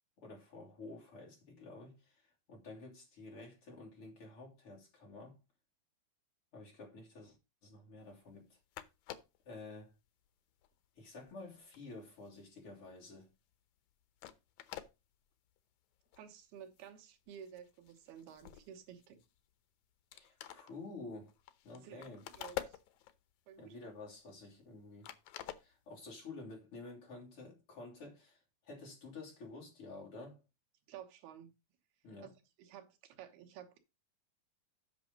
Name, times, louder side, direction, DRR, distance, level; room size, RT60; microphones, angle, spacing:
voice 1, 0.2-5.4 6.5-7.4 7.6-8.6 9.5-9.9 11.0-13.3 20.1-21.3 21.6-22.2 23.6-25.1 25.6-30.4 32.0-32.3, left 3 dB, 40° left, 3.8 m, -51 dB
sound 1, 8.4-8.5 8.7-9.4 10.1-10.3 10.6-13.0 13.3-13.5 13.9-14.0 14.2-14.9 15.6-15.7 16.0-16.2 16.6-17.0 17.3-19.5 19.8-19.9 20.1-23.3 23.7-24.8 25.0-26.2, left 13 dB, 90° left, 1.6 m, -48 dB
voice 2, 16.2-19.2 21.8-22.8 23.5-23.8 30.9-31.5 32.2-33.8, right 9 dB, 85° right, 3.1 m, -53 dB
8.4 x 6.2 x 5.3 m
omnidirectional pair, 4.3 m